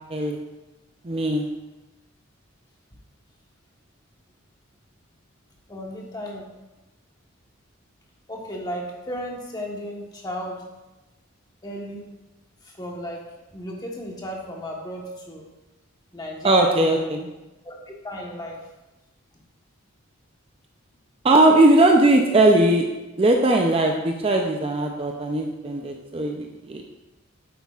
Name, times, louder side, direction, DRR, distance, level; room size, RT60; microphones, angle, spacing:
voice 1, 1.0-1.5 16.4-17.2 21.2-22.9 23.2-26.8, right 2 dB, 25° right, 2 dB, 0.5 m, -19 dB
voice 2, 5.7-6.5 8.3-10.7 11.6-12.1 12.6-13.3 13.5-15.5 16.1-17.1 17.6-18.7, equal, 20° left, -1 dB, 1.2 m, -34 dB
9.5 x 8.0 x 2.4 m, 1.0 s
head